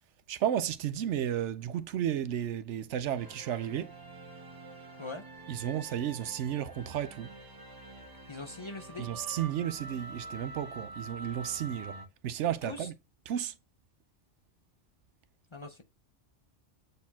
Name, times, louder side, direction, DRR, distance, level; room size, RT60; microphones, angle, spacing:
voice 1, 0.3-4.0 5.5-7.3 9.0-12.0 12.2-12.9 13.3-13.5, right 10 dB, 90° right, 1.0 m, -33 dB
sound 1, 3.2-12.1, right 3 dB, 20° right, 1.1 m, -46 dB
voice 2, 8.3-9.1 12.6-12.9 15.5-15.8, left 3 dB, 30° left, 0.6 m, -41 dB
8.1 x 4.2 x 2.8 m
omnidirectional pair, 1.2 m